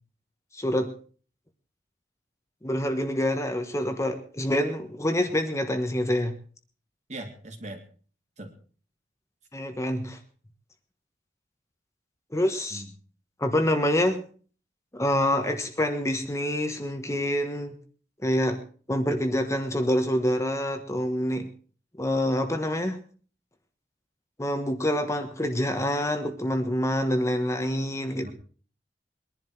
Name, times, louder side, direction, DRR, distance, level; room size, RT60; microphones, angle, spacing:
voice 1, 0.5-0.9 2.6-6.3 9.5-10.2 12.3-12.8 13.4-14.2 14.9-17.7 18.2-18.6 18.9-21.5 22.0-23.0 24.4-28.3, left 1 dB, 15° left, 6 dB, 1.3 m, -26 dB
voice 2, 7.1-7.8 8.4-8.5 12.7-12.9 28.2-28.3, right 1 dB, 45° right, 4 dB, 2.9 m, -39 dB
22.0 x 11.0 x 4.6 m, 0.41 s
head